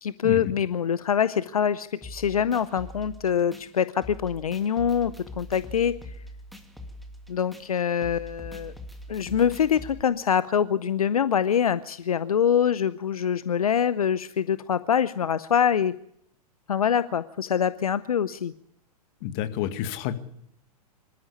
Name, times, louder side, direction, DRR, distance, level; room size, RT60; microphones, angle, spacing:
voice 1, 0.0-6.2 7.3-8.7 9.1-15.9 16.7-18.5, left 8 dB, 65° left, 15 dB, 0.8 m, -24 dB
sound 1, 2.0-10.0, left 1 dB, ahead, 2.5 m, -43 dB
voice 2, 19.2-20.1, left 11 dB, 40° left, 9 dB, 2.1 m, -29 dB
25.5 x 13.5 x 8.4 m, 0.72 s
figure-of-eight pair, 100°, 20 cm